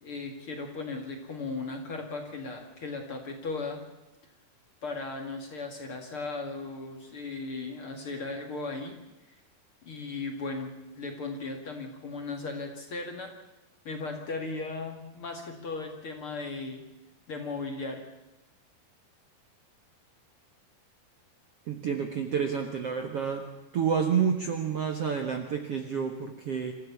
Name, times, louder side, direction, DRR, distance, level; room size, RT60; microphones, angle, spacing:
voice 1, 0.0-3.8 4.8-9.0 9.8-13.3 13.8-16.8 17.3-18.0, left 3 dB, 40° left, 3 dB, 2.5 m, -37 dB
voice 2, 21.7-23.4 23.7-26.7, right 7 dB, 55° right, 4 dB, 1.8 m, -29 dB
27.0 x 14.5 x 8.4 m, 1.0 s
omnidirectional pair, 4.5 m